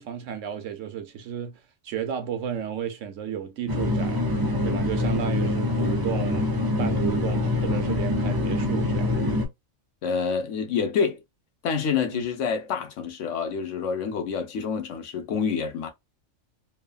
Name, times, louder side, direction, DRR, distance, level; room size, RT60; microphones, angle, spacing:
voice 1, 0.0-6.5 6.8-9.1 12.1-12.2, right 8 dB, 80° right, 1.0 m, -33 dB
sound 1, 3.7-9.5, left 2 dB, 40° right, 0.3 m, -25 dB
voice 2, 10.0-11.2 11.6-15.9, left 6 dB, 80° left, 1.0 m, -27 dB
3.1 x 2.1 x 2.3 m
omnidirectional pair, 1.3 m